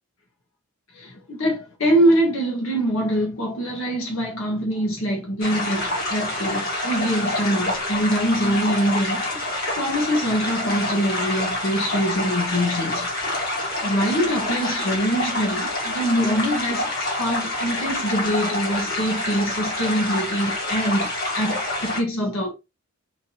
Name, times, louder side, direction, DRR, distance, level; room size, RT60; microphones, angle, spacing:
voice 1, 0.9-9.5 9.8-13.1 13.8-21.1 21.3-22.5, equal, 70° left, 1.5 m, -24 dB
sound 1, 5.4-22.0, left 2 dB, 45° left, 1.7 m, -27 dB
4.1 x 3.8 x 2.9 m
head